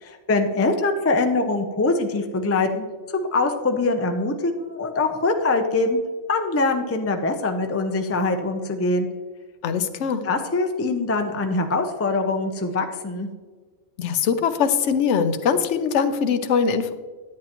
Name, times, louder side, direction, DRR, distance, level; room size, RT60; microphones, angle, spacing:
voice 1, 0.0-2.9 3.1-6.0 6.3-9.1 10.2-13.3, left 3 dB, 20° left, 5 dB, 0.4 m, -23 dB
voice 2, 9.6-10.2 14.0-16.9, left 6 dB, 70° left, 9 dB, 1.0 m, -22 dB
11.0 x 8.8 x 3.0 m, 1.4 s
omnidirectional pair, 1.3 m